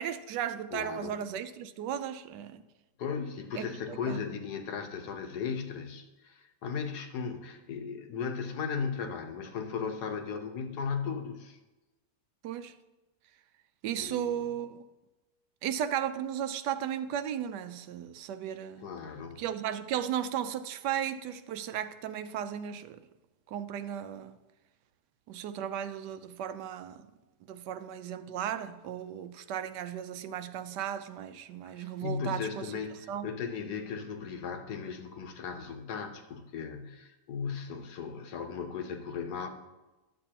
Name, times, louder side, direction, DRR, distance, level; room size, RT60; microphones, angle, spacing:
voice 1, 0.0-2.6 3.5-4.2 12.4-12.7 13.8-14.8 15.6-18.9 19.4-23.1 23.5-24.4 25.3-27.1 27.5-32.7 33.1-33.3, right 9 dB, 90° right, 1.2 m, -35 dB
voice 2, 0.7-1.2 3.0-11.6 14.0-14.4 18.8-19.4 31.7-39.5, left 6 dB, 75° left, 1.4 m, -36 dB
11.5 x 7.5 x 2.9 m
omnidirectional pair, 1.8 m